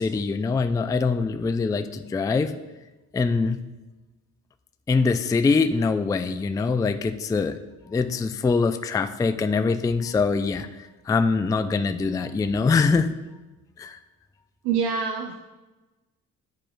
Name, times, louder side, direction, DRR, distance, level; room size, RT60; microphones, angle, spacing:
voice 1, 0.0-2.5 3.1-3.6 4.9-7.6 7.9-13.1 13.8-14.0, left 4 dB, 10° left, 9 dB, 0.3 m, -23 dB
voice 2, 14.6-15.3, right 6 dB, 75° right, 4 dB, 0.7 m, -25 dB
10.0 x 4.8 x 2.3 m, 1.1 s
hypercardioid pair, 45°, 41 cm